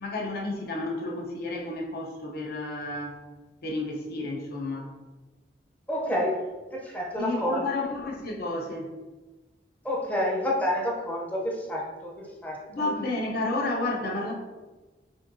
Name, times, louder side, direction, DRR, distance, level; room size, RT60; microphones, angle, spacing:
voice 1, 0.0-3.2 3.6-4.9 7.2-9.0 12.7-14.3, left 2 dB, 60° left, 0 dB, 0.8 m, -31 dB
voice 2, 5.9-6.4 6.7-7.8 9.8-12.9, equal, 10° left, -2 dB, 0.7 m, -29 dB
6.3 x 2.7 x 2.6 m, 1.2 s
head